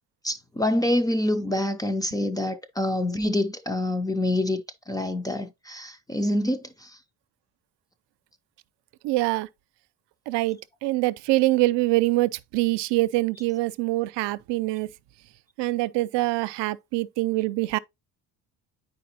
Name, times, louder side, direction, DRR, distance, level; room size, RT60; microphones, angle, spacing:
voice 1, 0.2-4.6 4.9-7.0, left 1 dB, 10° left, 0.3 m, -26 dB
voice 2, 9.0-9.5 10.3-14.9 15.6-17.8, right 19 dB, 80° right, 0.6 m, -24 dB
9.3 x 4.8 x 2.8 m
cardioid pair, 165°, 41 cm